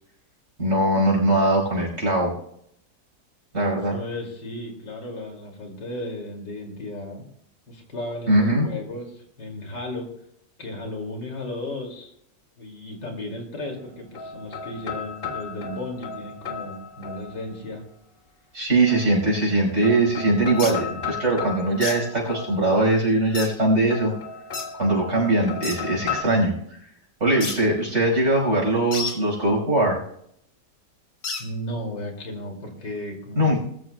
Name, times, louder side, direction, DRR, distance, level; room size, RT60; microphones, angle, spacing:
voice 1, 0.6-2.3 3.5-4.0 8.3-8.7 18.5-24.1 24.8-26.5 27.2-30.0 33.4-33.6, right 2 dB, 40° right, -2 dB, 5.4 m, -21 dB
voice 2, 3.9-7.2 7.7-10.1 10.6-12.1 12.6-17.8 31.4-33.6, left 1 dB, 80° left, 1 dB, 3.2 m, -35 dB
sound 1, 13.7-17.7 18.9-19.5 19.8-23.0 23.9-26.2, left 5 dB, 35° left, 1.3 m, -35 dB
sound 2, 20.6-20.8 21.8-22.0 23.3-23.5 24.5-24.7 25.6-25.8 27.4-27.6 28.9-29.2 31.2-31.4, left 4 dB, 60° left, 2.2 m, -30 dB
21.0 x 14.0 x 2.3 m, 0.70 s
omnidirectional pair, 1.9 m